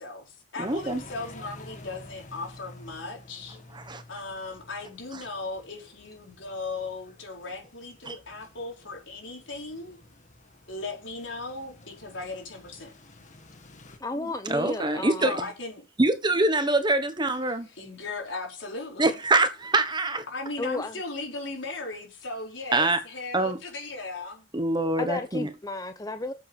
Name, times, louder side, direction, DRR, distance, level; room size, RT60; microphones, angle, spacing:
voice 1, 0.0-3.6 4.1-10.0 10.7-12.9 15.2-15.8 17.4-19.2 20.3-24.5, left 3 dB, 80° left, 4.4 m, -37 dB
sound 1, 0.6-14.0, left 1 dB, 40° left, 2.1 m, -50 dB
voice 2, 0.6-1.0 3.7-4.0 8.0-8.2 14.2-15.3 16.0-17.7 19.0-20.2 22.7-23.0 23.3-23.6 24.5-25.5, right 2 dB, 25° right, 1.2 m, -24 dB
voice 3, 14.0-15.5 20.6-21.0 25.0-26.3, left 2 dB, 20° left, 0.7 m, -33 dB
8.2 x 7.7 x 7.0 m
head